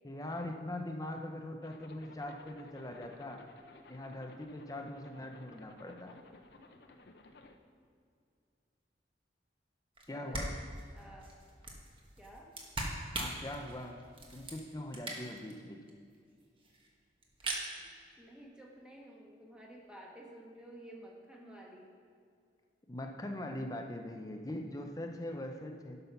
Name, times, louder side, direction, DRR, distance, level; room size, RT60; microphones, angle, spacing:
voice 1, 0.0-3.5 3.9-6.2 10.1-10.6 13.0-14.0 14.3-16.0 22.9-26.0, left 1 dB, 20° left, 3 dB, 0.6 m, -42 dB
Zipper (clothing), 1.6-7.6, left 2 dB, 65° left, 0.7 m, -56 dB
sound 1, 10.0-10.1 10.3-15.5 15.9-16.2 16.4-16.9 17.2-17.7, right 2 dB, 30° right, 1.2 m, -41 dB
voice 2, 10.1-10.5 10.9-11.4 12.2-12.5 17.7-21.9, right 1 dB, 5° right, -2 dB, 1.3 m, -53 dB
12.0 x 5.5 x 5.6 m, 2.2 s
head